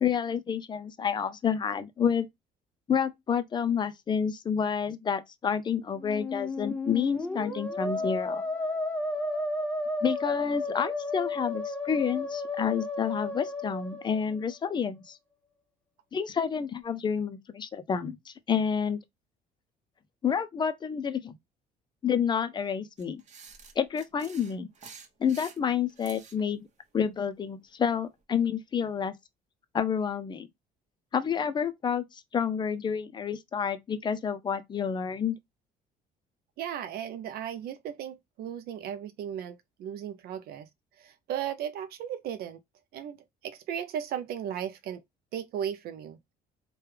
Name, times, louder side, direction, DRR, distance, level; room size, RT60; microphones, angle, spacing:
voice 1, 0.0-2.3 2.9-8.4 10.0-15.2 16.1-19.0 20.2-21.3 22.0-23.2 23.8-24.7 25.2-26.6 26.9-29.1 29.7-30.5 31.1-35.4, left 7 dB, 25° left, 0.4 m, -29 dB
Musical instrument, 5.9-14.7, left 2 dB, 5° left, 0.8 m, -33 dB
sound 1, 23.0-26.4, right 5 dB, 45° right, 0.9 m, -49 dB
voice 2, 36.6-40.7 41.0-42.6 42.9-43.2 43.4-45.0 45.3-46.3, right 9 dB, 65° right, 0.4 m, -36 dB
3.2 x 2.2 x 3.2 m
cardioid pair, 110°, 17 cm